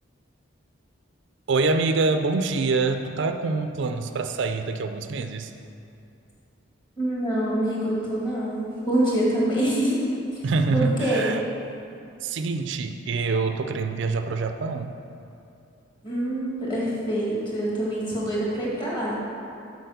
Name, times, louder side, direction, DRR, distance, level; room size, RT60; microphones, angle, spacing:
voice 1, 1.5-5.5 10.4-11.4 12.2-15.0, right 3 dB, 65° right, 7 dB, 0.4 m, -25 dB
voice 2, 7.0-10.0 10.3-10.4 10.7-11.3 16.0-19.1, right 1 dB, 25° left, -6 dB, 2.1 m, -25 dB
7.6 x 5.0 x 6.8 m, 2.6 s
head